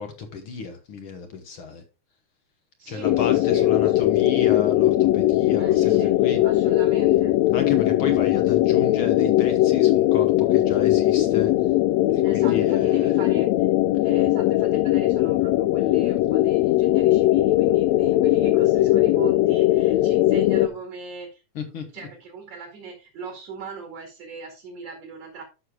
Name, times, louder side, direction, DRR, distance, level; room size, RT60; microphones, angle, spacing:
voice 1, 0.0-1.8 2.9-6.4 7.5-11.5 12.1-13.1 21.5-21.8, left 4 dB, 55° left, 1.7 m, -32 dB
voice 2, 2.8-4.0 5.6-6.2 6.4-7.3 12.2-13.7 14.0-21.4 21.7-25.4, right 5 dB, 60° right, 3.2 m, -39 dB
sound 1, 3.0-20.7, left 15 dB, 80° left, 1.7 m, -20 dB
12.5 x 6.5 x 2.3 m
omnidirectional pair, 3.3 m